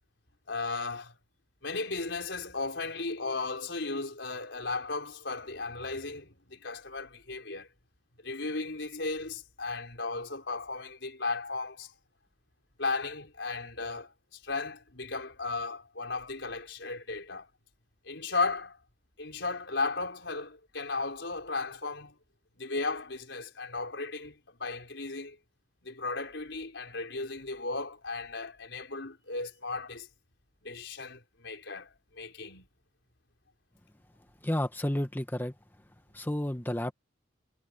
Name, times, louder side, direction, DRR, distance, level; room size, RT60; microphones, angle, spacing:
voice 1, 0.5-1.2 1.6-7.7 8.2-11.9 12.8-17.5 18.0-18.8 19.2-22.1 22.6-25.4 25.8-30.1 30.6-32.7, left 3 dB, 70° left, 4.6 m, -35 dB
voice 2, 34.4-35.5 36.1-36.9, left 1 dB, 10° left, 1.1 m, -31 dB
head